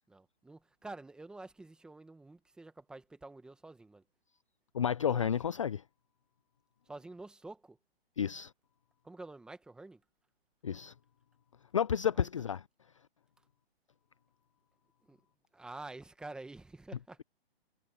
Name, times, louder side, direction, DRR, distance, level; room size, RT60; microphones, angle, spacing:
voice 1, 0.1-4.0 5.0-5.3 6.9-7.8 9.0-10.0 12.1-12.3 15.1-15.2 15.5-17.2, right 2 dB, 5° right, 1.2 m, -48 dB
voice 2, 4.7-5.8 8.2-8.5 10.6-10.9 11.7-12.6, left 8 dB, 30° left, 0.4 m, -31 dB
hypercardioid pair, 155°, 31 cm